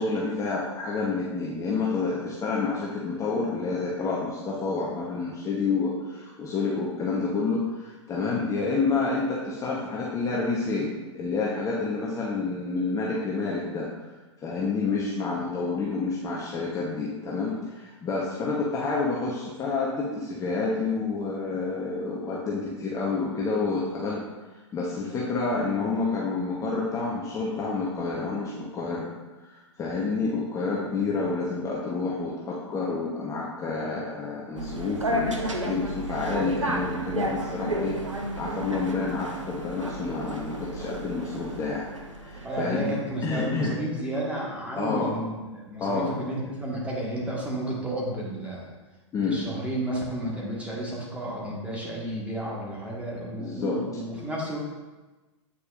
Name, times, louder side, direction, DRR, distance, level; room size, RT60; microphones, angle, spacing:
voice 1, 0.0-13.9 14.4-24.2 24.7-29.1 29.4-41.9 42.2-43.7 44.8-45.2 45.8-46.2 49.1-49.4 53.3-53.8, left 4 dB, 20° left, -5 dB, 0.9 m, -29 dB
sound 1, 34.6-42.9, right 1 dB, 90° right, 0.7 m, -32 dB
voice 2, 42.4-48.7 49.2-54.6, right 1 dB, 10° right, -4 dB, 1.5 m, -32 dB
8.3 x 4.6 x 2.5 m, 1.2 s
figure-of-eight pair, 105°, 15 cm